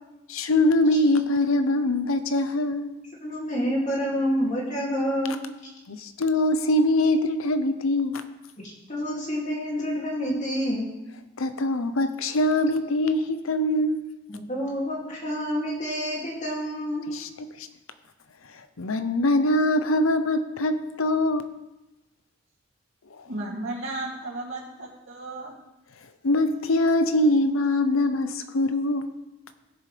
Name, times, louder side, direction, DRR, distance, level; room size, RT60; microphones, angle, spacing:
voice 1, 0.3-3.0 5.9-8.2 11.4-14.1 17.1-17.7 18.8-21.4 26.2-29.1, left 1 dB, 80° left, 0.7 m, -23 dB
voice 2, 3.2-5.4 8.9-10.8 14.3-17.1, equal, 35° left, 2.4 m, -28 dB
voice 3, 23.3-25.5, right 2 dB, 70° right, 2.6 m, -34 dB
16.0 x 6.8 x 3.3 m
head